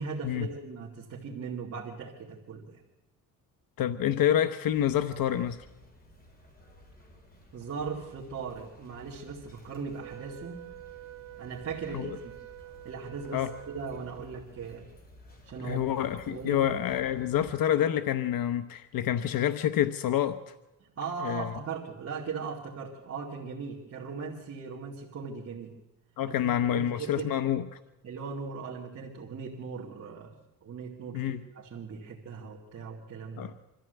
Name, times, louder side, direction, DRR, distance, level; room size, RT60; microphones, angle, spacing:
voice 1, 0.0-2.8 7.5-10.6 11.4-12.3 12.8-14.9 15.4-15.9 16.2-16.7 20.8-25.8 26.3-27.3 28.0-30.3 30.6-33.5, right 5 dB, 45° right, -3 dB, 2.4 m, -39 dB
voice 2, 3.8-5.7 11.9-12.1 13.3-13.5 15.6-20.4 21.2-21.5 26.2-27.6 31.1-31.4 33.4-33.5, left 11 dB, 75° left, 10 dB, 0.9 m, -27 dB
sound 1, 4.7-17.5, left 1 dB, 25° left, 3.7 m, -54 dB
Wind instrument woodwind instrument, 10.0-14.4, right 13 dB, 75° right, 1.2 m, -47 dB
25.0 x 14.0 x 8.0 m, 0.97 s
cardioid pair, 150°, 35 cm